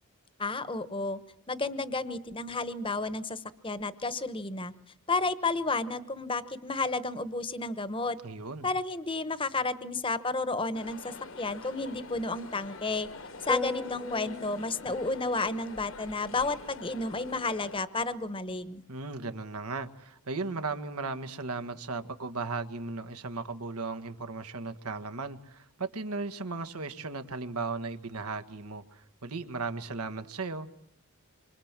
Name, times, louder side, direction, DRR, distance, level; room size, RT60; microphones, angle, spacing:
voice 1, 0.4-1.2 1.5-4.7 5.1-8.2 8.6-13.1 13.4-18.8, left 3 dB, 25° left, 13 dB, 1.1 m, -32 dB
voice 2, 8.2-8.7 18.9-30.7, right 3 dB, 90° right, 9 dB, 1.7 m, -36 dB
sound 1, 10.7-17.8, left 3 dB, 60° left, 1.4 m, -46 dB
sound 2, 13.5-15.5, left 3 dB, ahead, 1.0 m, -36 dB
27.0 x 25.0 x 7.5 m, 0.69 s
head